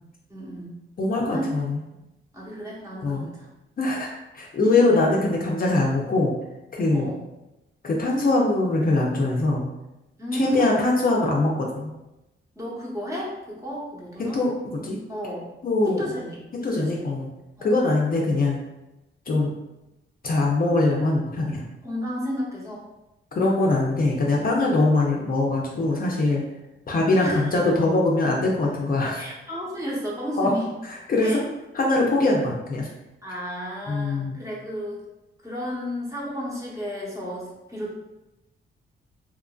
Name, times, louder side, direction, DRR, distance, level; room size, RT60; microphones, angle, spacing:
voice 1, 0.3-0.7 1.3-1.5 1.9-2.0 2.3-3.5 4.6-4.8 6.9-7.2 10.2-10.9 12.6-14.4 15.1-15.5 15.8-16.4 16.7-17.1 17.6-17.8 21.8-22.9 27.2-27.6 29.1-30.7 31.2-31.4 33.2-35.0 35.4-37.9, equal, 15° right, -6 dB, 1.0 m, -32 dB
voice 2, 1.0-1.8 3.0-3.3 3.8-4.1 4.3-6.3 6.7-7.1 7.8-9.7 10.3-11.9 14.2-15.0 15.6-16.0 16.6-17.3 17.6-18.6 19.3-19.5 20.2-21.6 23.3-26.4 26.9-29.2 30.3-30.5 30.8-31.4 31.7-32.9 33.9-34.4, left 2 dB, 45° left, -2 dB, 0.5 m, -22 dB
2.9 x 2.4 x 2.3 m, 0.97 s
cardioid pair, 80°, 21 cm